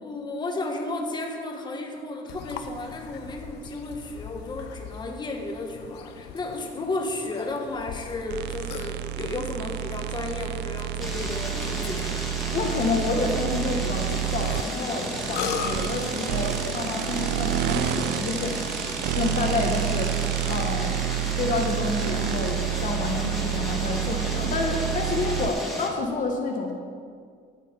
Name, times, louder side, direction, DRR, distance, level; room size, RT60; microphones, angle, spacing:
voice 1, 0.0-12.2, left 2 dB, 25° left, 1 dB, 1.6 m, -33 dB
Burping eructation, 2.3-18.2, left 7 dB, 85° left, 0.9 m, -40 dB
sound 1, 8.3-25.5, right 12 dB, 80° right, 0.4 m, -29 dB
sound 2, 11.0-25.9, equal, ahead, 2.4 m, -34 dB
voice 2, 12.5-18.7 19.1-21.0 21.4-26.7, left 3 dB, 50° left, 1 dB, 1.4 m, -29 dB
13.0 x 7.5 x 5.5 m, 2.1 s
cardioid pair, 110°, 17 cm